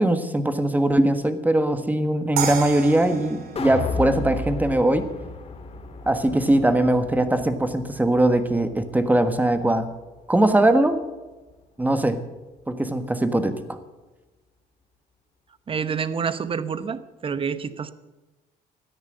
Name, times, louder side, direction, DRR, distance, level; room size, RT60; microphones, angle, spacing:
voice 1, 0.0-5.1 6.1-9.9 10.3-11.0 11.8-12.2 12.7-13.6, right 1 dB, 10° right, 9 dB, 1.4 m, -21 dB
sound 1, 2.4-5.4, right 7 dB, 65° right, 2.5 m, -33 dB
sound 2, 3.6-9.8 10.2-10.3, left 4 dB, 35° left, 2.2 m, -34 dB
voice 2, 15.7-17.9, right 6 dB, 30° right, 14 dB, 0.9 m, -28 dB
13.5 x 10.0 x 7.9 m, 1.1 s
cardioid pair, 110°, 17 cm